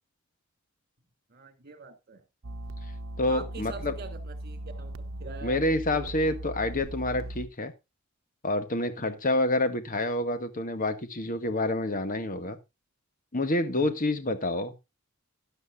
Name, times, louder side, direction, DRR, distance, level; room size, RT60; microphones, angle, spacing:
voice 1, 1.3-2.2 3.2-4.9 5.2-6.3 9.0-9.1 13.7-13.9, right 4 dB, 45° right, 9 dB, 2.8 m, -44 dB
sound 1, 2.4-7.5, right 1 dB, 80° right, 0.9 m, -38 dB
voice 2, 3.2-3.9 5.4-7.7 8.4-12.6 13.3-14.7, left 1 dB, 40° left, 10 dB, 1.7 m, -28 dB
13.0 x 11.0 x 2.4 m, 0.25 s
head